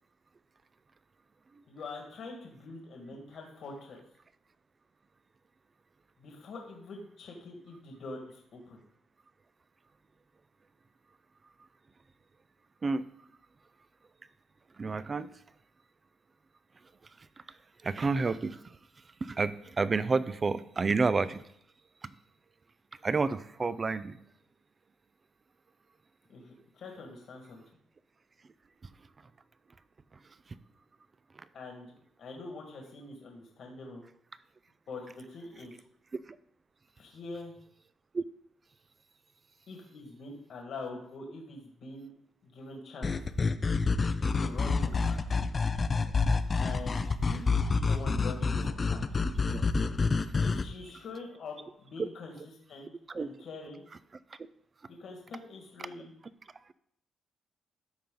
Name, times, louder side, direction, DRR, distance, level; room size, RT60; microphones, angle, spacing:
voice 1, 1.7-4.0 6.2-8.8 26.3-27.6 31.5-31.9 32.2-34.0 34.9-35.7 37.0-37.5 39.7-42.1 42.4-43.2 44.2-45.3 46.5-49.0 50.4-52.9 53.2-53.8 54.9-56.1, left 3 dB, 65° left, 1 dB, 1.7 m, -44 dB
voice 2, 14.8-15.3 17.8-18.6 19.2-21.4 23.0-24.2 38.1-38.2 49.5-49.6 53.1-53.3, right 4 dB, 35° right, 15 dB, 0.4 m, -29 dB
sound 1, 43.0-50.7, left 4 dB, 35° left, 0.5 m, -28 dB
13.0 x 4.4 x 3.8 m, 0.71 s
cardioid pair, 90°, 0 cm